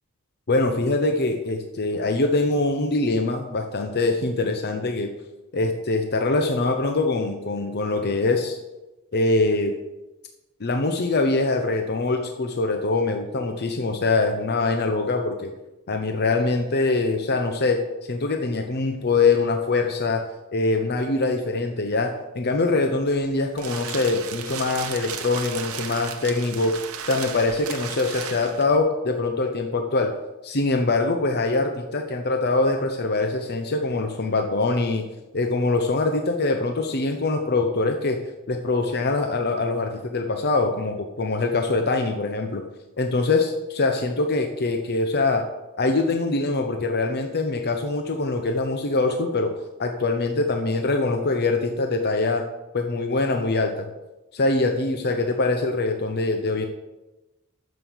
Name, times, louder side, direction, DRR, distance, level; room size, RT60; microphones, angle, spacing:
voice 1, 0.5-5.1 5.5-8.6 9.1-9.8 10.6-15.5 15.9-17.8 18.1-20.2 20.5-26.7 27.0-30.1 30.4-35.0 35.3-38.2 38.5-42.6 43.0-45.4 45.8-49.5 49.8-52.4 52.7-53.9 54.3-56.7, left 3 dB, 50° left, 4 dB, 0.8 m, -23 dB
sound 1, 23.1-28.8, right 8 dB, 70° right, 1.0 m, -35 dB
9.5 x 7.2 x 6.3 m, 1.1 s
head